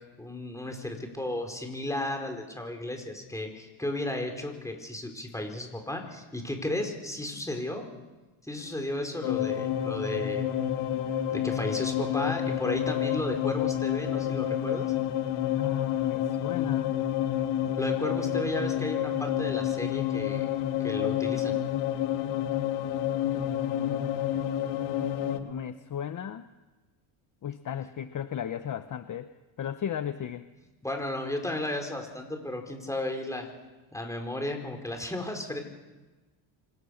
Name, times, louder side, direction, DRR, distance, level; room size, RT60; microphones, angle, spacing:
voice 1, 0.2-7.9 8.4-10.5 11.3-14.9 17.8-20.5 20.8-21.6 30.8-33.5 33.9-35.6, left 1 dB, 5° left, 3 dB, 4.8 m, -34 dB
sound 1, 9.2-25.4, left 11 dB, 80° left, 2.2 m, -29 dB
voice 2, 15.6-17.0 23.3-24.2 25.4-26.4 27.4-29.3 29.6-30.4, left 9 dB, 40° left, 10 dB, 1.0 m, -35 dB
28.0 x 25.0 x 6.6 m, 1.2 s
cardioid pair, 115°, 50 cm